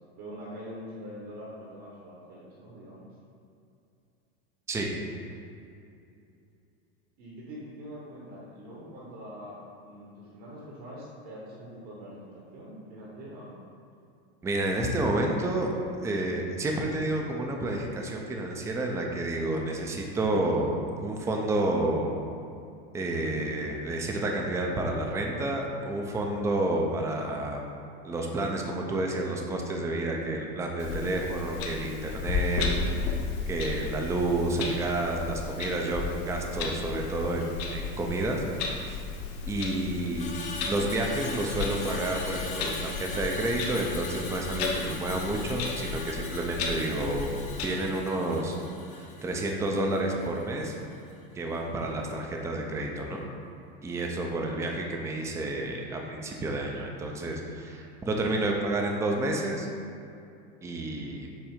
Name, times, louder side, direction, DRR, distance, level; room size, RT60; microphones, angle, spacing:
voice 1, 0.2-3.1 7.2-13.6, equal, 55° right, -5 dB, 1.4 m, -44 dB
voice 2, 14.4-15.7 16.0-22.1 22.9-27.6 28.0-33.2 33.5-38.4 38.7-39.0 39.5-40.2 40.7-48.6 48.9-50.7 51.3-53.2 53.8-59.7 60.6-61.3, right 2 dB, 10° right, 1 dB, 0.4 m, -30 dB
Clock, 30.8-47.7, left 4 dB, 70° left, 1.2 m, -34 dB
Screech, 40.1-50.5 50.8-51.1, left 3 dB, 25° left, 0.8 m, -41 dB
7.3 x 2.6 x 5.0 m, 2.6 s
supercardioid pair, 140°, 31 cm